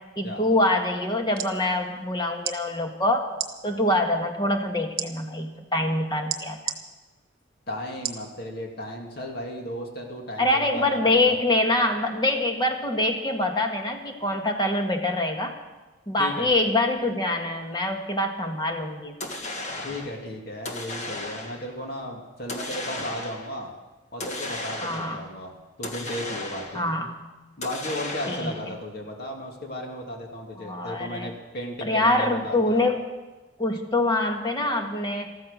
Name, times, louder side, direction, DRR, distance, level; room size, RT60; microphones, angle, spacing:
voice 1, 0.2-3.3 3.6-6.7 10.4-15.6 16.1-19.2 24.8-25.2 26.7-27.1 28.3-28.6 30.6-31.3 31.8-33.0 33.6-35.3, left 1 dB, 25° left, 3 dB, 1.8 m, -25 dB
sound 1, 1.1-1.5 2.4-2.6 3.3-3.5 5.0-5.1 6.3-6.8 8.0-8.3 8.8-8.9, right 9 dB, 55° right, 1.3 m, -30 dB
voice 2, 7.7-11.3 16.2-16.5 19.8-23.7 24.1-25.5 25.8-26.9 27.6-32.9, left 1 dB, 55° left, 1 dB, 2.4 m, -35 dB
sound 2, 19.2-20.2 20.7-21.7 22.5-23.5 24.2-25.3 25.8-26.9 27.6-28.7, left 2 dB, 40° left, 1.7 m, -35 dB
14.5 x 13.5 x 6.7 m, 1.2 s
head